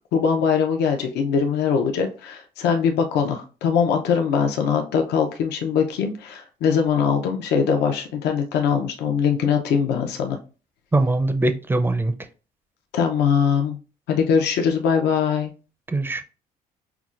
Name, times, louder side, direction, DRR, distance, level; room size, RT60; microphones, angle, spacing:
voice 1, 0.1-10.4 12.9-13.8 14.1-15.5, left 6 dB, 80° left, 0.6 m, -22 dB
voice 2, 10.9-12.1 15.9-16.2, right 2 dB, 10° right, 0.4 m, -21 dB
5.8 x 2.2 x 2.4 m
cardioid pair, 110°, 17 cm